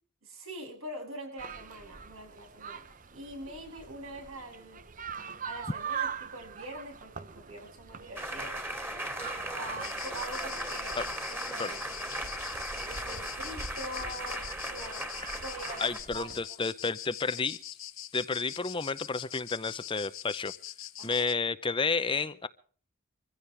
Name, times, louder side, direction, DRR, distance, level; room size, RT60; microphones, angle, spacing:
voice 1, 0.2-4.8 5.4-8.6 9.5-11.8 12.9-15.0 15.4-15.8 16.1-16.6 21.0-21.3, right 1 dB, 75° right, 3 dB, 7.5 m, -44 dB
sound 1, 1.4-16.5, right 6 dB, 40° right, 0.8 m, -43 dB
sound 2, 8.2-16.0, right 1 dB, 10° right, 2.5 m, -37 dB
sound 3, 9.8-21.3, left 12 dB, 70° left, 1.4 m, -44 dB
voice 2, 15.8-17.6 18.1-20.5 21.0-22.5, left 4 dB, 25° left, 14 dB, 0.6 m, -31 dB
24.5 x 15.5 x 3.4 m, 0.44 s
head